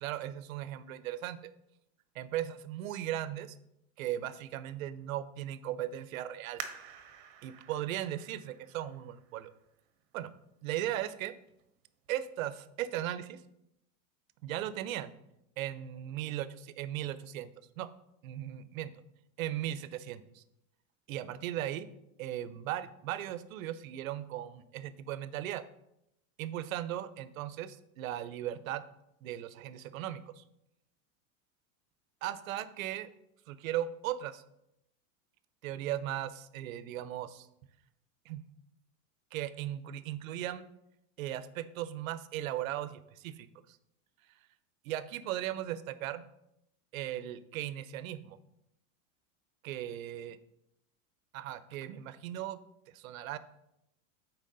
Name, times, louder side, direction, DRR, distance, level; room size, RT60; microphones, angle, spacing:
voice 1, 0.0-1.5 2.1-3.5 4.0-6.6 7.4-9.5 10.1-10.3 10.6-11.3 12.1-13.4 14.4-15.1 15.6-17.5 17.8-17.9 18.2-18.9 19.4-20.4 21.1-21.9 22.2-25.6 26.4-28.8 29.2-30.4 32.2-33.1 33.5-34.4 35.6-37.5 38.3-38.4 39.3-40.6 41.2-43.8 44.8-46.2 46.9-48.4 49.6-50.4 51.3-52.6 52.9-53.4, right 12 dB, 85° right, 14 dB, 0.6 m, -37 dB
sound 1, 6.6-9.9 10.5-10.6 11.3-11.7 12.0-12.1, right 8 dB, 40° right, 0.8 m, -48 dB
7.6 x 4.5 x 3.9 m, 0.82 s
supercardioid pair, 155°, 40 cm